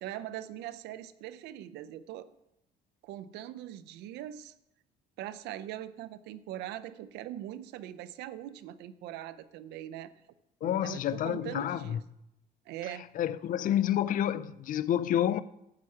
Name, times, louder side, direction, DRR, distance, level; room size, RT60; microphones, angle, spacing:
voice 1, 0.0-2.3 3.0-4.5 5.2-10.1 10.6-12.0 12.7-13.1, right 12 dB, 85° right, 0.5 m, -41 dB
voice 2, 10.6-12.0 13.2-15.4, left 11 dB, 55° left, 0.4 m, -29 dB
9.7 x 4.8 x 7.7 m
cardioid pair, 110°, 17 cm